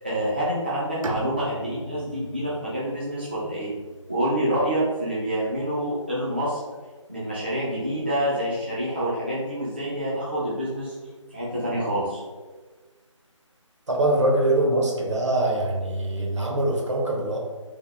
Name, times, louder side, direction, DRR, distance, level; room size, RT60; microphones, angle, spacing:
voice 1, 0.0-3.7 4.1-6.6 7.1-11.0 11.3-12.2, right 1 dB, 20° right, -8 dB, 0.4 m, -27 dB
Bowed string instrument, 1.0-5.0, right 2 dB, 90° right, 0.6 m, -39 dB
voice 2, 13.9-17.4, right 1 dB, 65° right, -1 dB, 1.1 m, -23 dB
3.4 x 2.6 x 3.3 m, 1.3 s
figure-of-eight pair, 170°, 17 cm